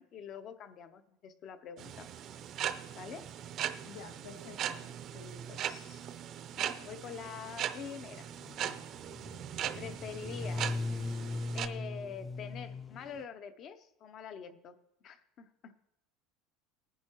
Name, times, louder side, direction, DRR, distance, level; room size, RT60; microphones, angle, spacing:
voice 1, 0.0-2.1 2.9-3.3 5.5-6.1 6.5-8.3 9.8-10.8 11.5-14.8 15.0-15.7, left 7 dB, 35° left, 0.7 m, -46 dB
sound 1, 1.8-11.7, right 10 dB, 35° right, 0.6 m, -39 dB
voice 2, 3.8-5.8, left 6 dB, 85° left, 1.9 m, -51 dB
sound 2, 8.1-13.2, left 3 dB, 15° left, 0.3 m, -39 dB
19.0 x 10.5 x 3.0 m
cardioid pair, 170°, 0 cm